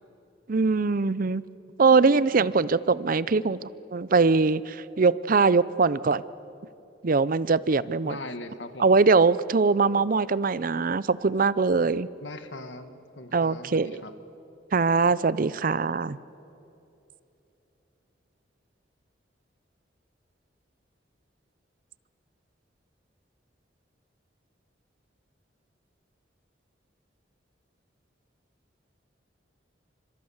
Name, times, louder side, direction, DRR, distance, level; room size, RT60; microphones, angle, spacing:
voice 1, 0.5-1.4 1.8-6.2 7.0-8.2 8.8-12.1 13.3-14.0 14.7-16.2, right 4 dB, 50° right, 18 dB, 0.6 m, -22 dB
voice 2, 8.0-8.9 12.2-12.9 13.2-14.1, left 2 dB, 80° left, 8 dB, 1.9 m, -40 dB
28.5 x 26.0 x 7.2 m, 2.9 s
head